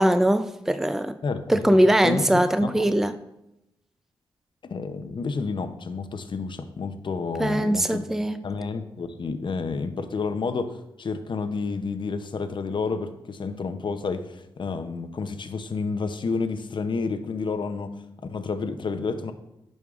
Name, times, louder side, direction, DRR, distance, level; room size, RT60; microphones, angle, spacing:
voice 1, 0.0-1.2 1.5-3.2 7.4-8.4, right 1 dB, 5° right, 11 dB, 0.4 m, -21 dB
voice 2, 1.2-2.9 4.6-8.0 8.4-19.3, left 4 dB, 55° left, 8 dB, 0.6 m, -30 dB
9.3 x 5.4 x 2.5 m, 0.90 s
cardioid pair, 50°, 9 cm